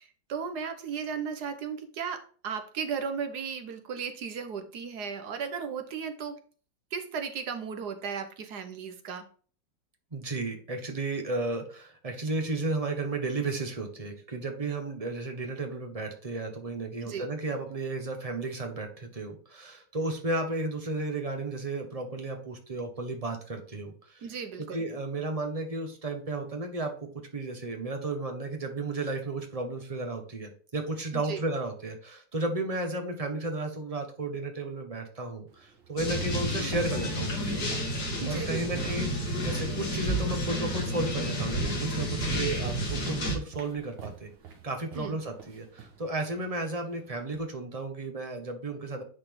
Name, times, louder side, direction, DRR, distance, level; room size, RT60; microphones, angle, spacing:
voice 1, 0.0-6.4 6.9-9.3 17.0-17.3 24.2-24.8 31.2-31.4 38.2-38.6 44.9-45.2, right 6 dB, 65° right, 7 dB, 1.4 m, -35 dB
voice 2, 10.1-24.3 24.6-37.7 38.3-44.3 44.6-49.0, right 2 dB, 20° right, 4 dB, 1.2 m, -33 dB
sound 1, 35.5-40.0 41.3-41.4 41.8-47.5, right 4 dB, 85° right, 2.0 m, -45 dB
sound 2, 36.0-43.4, equal, 60° left, 2.4 m, -30 dB
9.7 x 4.2 x 3.6 m, 0.42 s
omnidirectional pair, 2.0 m